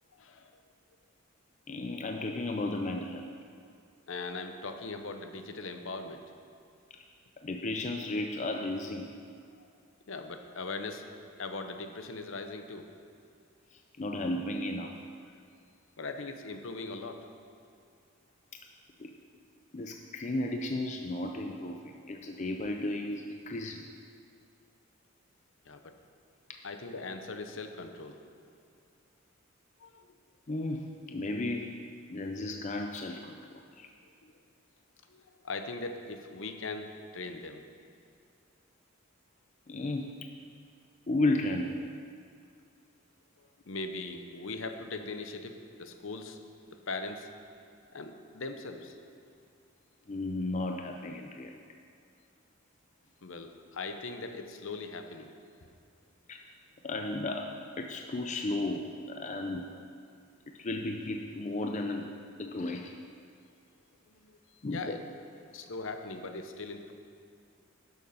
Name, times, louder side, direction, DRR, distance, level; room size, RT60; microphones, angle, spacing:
voice 1, 0.1-0.6 4.1-6.3 9.6-9.7 10.1-11.0 11.4-12.9 16.0-17.3 25.6-25.9 26.6-28.5 29.8-30.1 34.2-34.3 35.1-37.7 43.4-46.4 46.7-47.3 47.9-49.0 53.2-55.3 64.1-65.0 65.5-66.9, left 3 dB, 65° left, 6 dB, 0.8 m, -40 dB
voice 2, 1.7-3.3 7.4-9.1 13.7-15.0 19.0-19.1 19.7-23.9 30.5-31.7 32.1-33.4 33.8-33.9 39.7-40.1 41.1-41.9 50.1-51.5 56.3-56.4 56.8-57.5 57.8-59.7 60.6-62.1 62.4-63.0 64.6-65.0, left 2 dB, 35° left, 3 dB, 0.4 m, -34 dB
11.5 x 6.8 x 5.5 m, 2.4 s
head